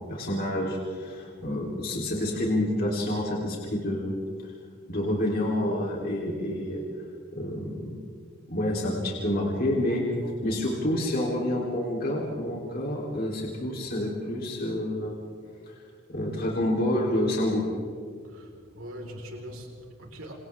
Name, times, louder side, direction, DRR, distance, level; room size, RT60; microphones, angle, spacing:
voice 1, 0.0-4.2 4.4-4.5 4.9-6.8 7.3-8.0 8.5-10.0 10.4-15.2 15.7-15.8 16.1-17.6, left 1 dB, 45° left, -2 dB, 3.6 m, -28 dB
voice 2, 10.2-10.6 18.2-20.3, equal, 85° right, 1 dB, 4.6 m, -42 dB
29.0 x 28.0 x 3.7 m, 2.1 s
head